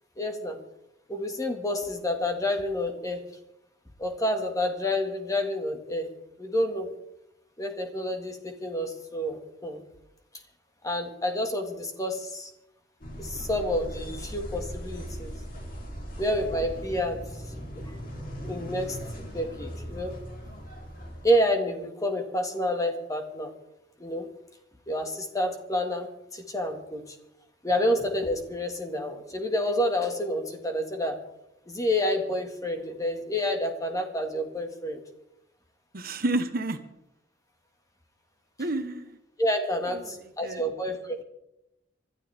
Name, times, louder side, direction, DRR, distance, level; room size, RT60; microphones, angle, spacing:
voice 1, 0.2-0.6 1.1-3.2 4.0-6.1 6.4-6.9 7.6-9.8 10.8-12.5 13.2-15.4 16.2-17.4 17.9-18.0 18.4-20.1 21.2-23.5 24.0-24.3 24.9-27.2 27.6-31.2 31.7-35.0 39.4-41.2, left 1 dB, 20° left, 4 dB, 2.0 m, -29 dB
sound 1, 13.0-21.3, equal, 50° left, 3.6 m, -39 dB
voice 2, 35.9-36.8 38.6-39.2 39.9-40.6, right 2 dB, 55° right, 8 dB, 1.2 m, -30 dB
26.0 x 12.0 x 3.6 m, 0.87 s
head